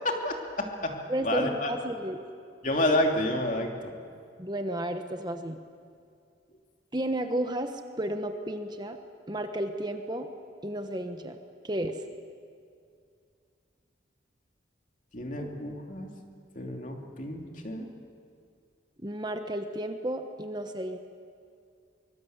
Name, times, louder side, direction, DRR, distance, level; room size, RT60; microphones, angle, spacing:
voice 1, 0.0-0.9 1.2-1.7 2.6-3.9 15.1-16.1 16.5-17.9, left 1 dB, 45° left, 2 dB, 3.0 m, -29 dB
voice 2, 1.1-2.2 4.4-5.6 6.9-9.0 9.3-10.3 10.6-11.4 11.6-12.0 19.0-21.0, right 1 dB, 25° right, 6 dB, 1.2 m, -32 dB
24.0 x 22.5 x 8.1 m, 2.3 s
head